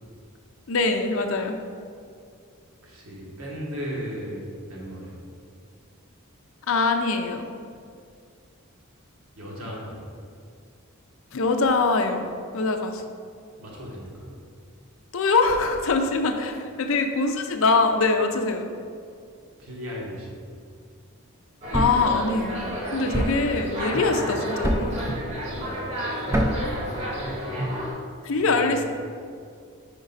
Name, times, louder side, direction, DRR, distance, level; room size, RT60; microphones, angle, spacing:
voice 1, 0.7-1.6 6.7-7.5 11.3-12.3 12.5-13.0 15.1-18.7 21.7-25.1 28.2-28.8, left 3 dB, 65° left, 5 dB, 0.5 m, -23 dB
voice 2, 2.8-5.2 9.3-10.0 13.6-14.3 19.6-20.4 22.8-23.0 26.6-27.9 28.4-28.8, equal, 70° right, -3 dB, 1.4 m, -37 dB
sound 1, 21.6-27.9, equal, 30° right, 1.0 m, -31 dB
Thump thud, 21.7-22.1 23.1-23.5 24.6-25.0 26.3-26.7, equal, 10° right, 0.4 m, -24 dB
5.1 x 5.0 x 4.0 m, 2.3 s
head